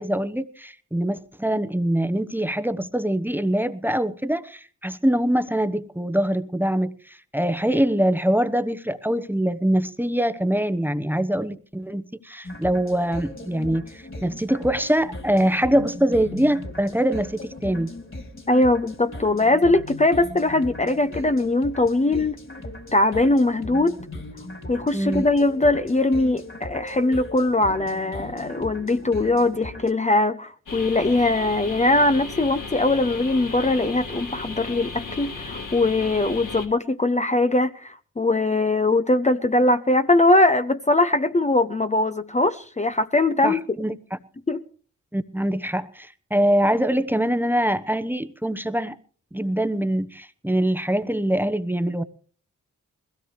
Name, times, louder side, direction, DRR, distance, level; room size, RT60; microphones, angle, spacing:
voice 1, 0.0-17.9 24.9-25.3 43.4-44.2 45.1-49.0 49.3-52.0, right 1 dB, 5° right, 1.0 m, -24 dB
sound 1, 12.4-29.9, left 1 dB, 35° left, 2.9 m, -38 dB
voice 2, 18.5-22.4 22.9-24.0 24.7-43.6 44.5-44.6, left 2 dB, 20° left, 0.8 m, -21 dB
sound 2, 30.7-36.7, left 4 dB, 70° left, 3.6 m, -35 dB
21.0 x 16.5 x 3.2 m
supercardioid pair, 45°, 33 cm